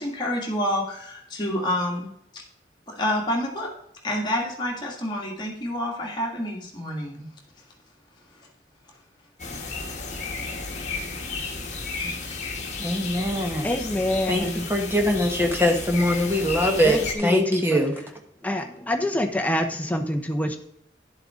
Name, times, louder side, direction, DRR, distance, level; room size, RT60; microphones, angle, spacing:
voice 1, 0.0-2.1 3.0-3.7 4.0-7.2 11.9-12.2, left 1 dB, 25° left, -2 dB, 2.1 m, -28 dB
sound 1, 9.4-17.1, left 3 dB, 40° left, 1.5 m, -33 dB
voice 2, 12.8-13.7 14.3-17.9, equal, 15° right, 3 dB, 1.2 m, -23 dB
voice 3, 13.6-14.7 16.8-17.8 18.4-20.6, left 1 dB, 10° left, 5 dB, 0.7 m, -26 dB
11.0 x 7.6 x 3.7 m, 0.73 s
head